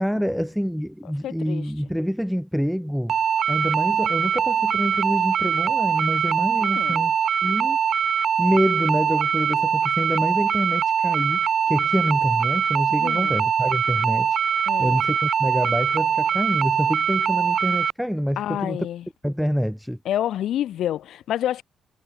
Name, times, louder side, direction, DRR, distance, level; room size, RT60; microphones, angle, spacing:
voice 1, 0.0-3.2 3.5-7.1 7.4-7.8 8.4-18.9 19.2-20.0, equal, ahead, 3.3 m, -26 dB
voice 2, 1.2-1.7 6.6-7.1 13.0-13.4 14.7-15.0 18.4-19.0 20.0-21.6, left 11 dB, 75° left, 4.1 m, -28 dB
sound 1, 3.1-17.9, right 7 dB, 55° right, 3.2 m, -22 dB
cardioid pair, 90°, 0 cm